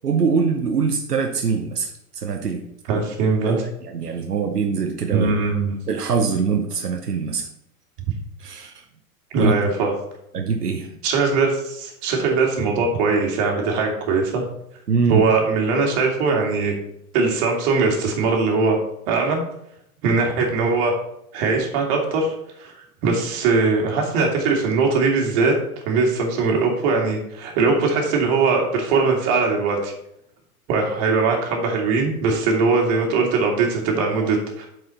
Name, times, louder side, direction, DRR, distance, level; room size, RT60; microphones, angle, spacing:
voice 1, 0.0-2.7 2.9-3.0 3.4-5.3 5.9-7.5 8.4-8.8 9.4-9.5 10.3-11.0 14.9-15.2, right 5 dB, 90° right, 4 dB, 0.9 m, -23 dB
voice 2, 2.9-3.6 5.1-5.7 9.3-9.9 11.0-14.4 15.1-16.7 17.1-18.8 19.1-19.4 20.0-20.9 21.3-22.3 22.6-22.7 23.0-25.5 25.9-29.9 30.7-34.7, right 4 dB, 45° right, 0 dB, 2.3 m, -20 dB
7.8 x 5.0 x 4.3 m, 0.79 s
hypercardioid pair, 105°, 45 cm